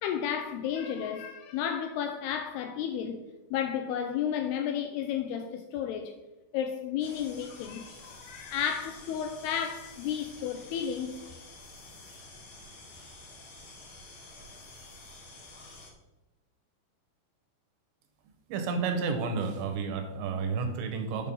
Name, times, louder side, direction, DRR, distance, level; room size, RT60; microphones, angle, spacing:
voice 1, 0.0-3.2 3.5-6.1 6.5-11.2, left 8 dB, 85° left, 2.4 m, -32 dB
sound 1, 7.0-15.9, left 2 dB, 55° left, 3.0 m, -49 dB
voice 2, 18.5-21.3, right 5 dB, 80° right, 3.3 m, -31 dB
8.5 x 6.2 x 5.4 m
omnidirectional pair, 5.1 m